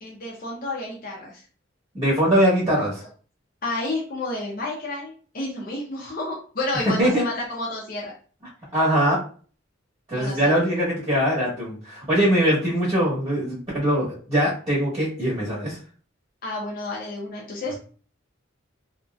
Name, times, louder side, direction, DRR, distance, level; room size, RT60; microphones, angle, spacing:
voice 1, 0.0-1.4 3.6-8.1 10.1-10.5 16.4-17.8, left 2 dB, 50° left, -4 dB, 0.7 m, -30 dB
voice 2, 1.9-3.0 6.8-7.2 8.7-9.2 10.1-15.8, equal, 25° right, -7 dB, 1.0 m, -22 dB
2.9 x 2.6 x 2.3 m, 0.41 s
head